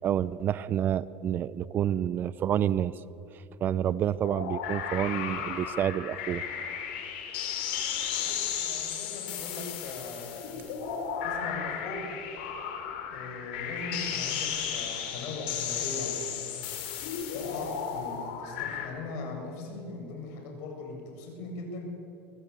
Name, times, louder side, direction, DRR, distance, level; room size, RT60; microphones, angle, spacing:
voice 1, 0.0-3.0 3.3-6.4, right 10 dB, 35° right, 18 dB, 0.6 m, -29 dB
sound 1, 4.2-18.9, left 8 dB, 80° left, 4.3 m, -34 dB
voice 2, 8.1-10.6 11.2-12.2 13.1-16.6 17.3-21.8, left 3 dB, 65° left, 2 dB, 7.7 m, -40 dB
24.0 x 21.0 x 8.4 m, 2.9 s
supercardioid pair, 130°, 6 cm